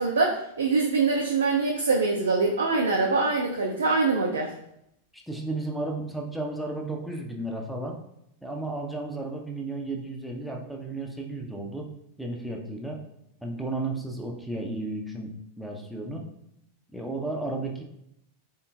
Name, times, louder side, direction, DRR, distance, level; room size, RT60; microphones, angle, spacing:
voice 1, 0.0-4.5, right 3 dB, 70° right, 0 dB, 0.3 m, -24 dB
voice 2, 5.3-8.0 8.4-11.9 12.2-13.0 13.4-16.2 16.9-17.8, right 2 dB, ahead, 0 dB, 0.5 m, -33 dB
3.5 x 2.7 x 2.2 m, 0.76 s
figure-of-eight pair, 90°, 0 cm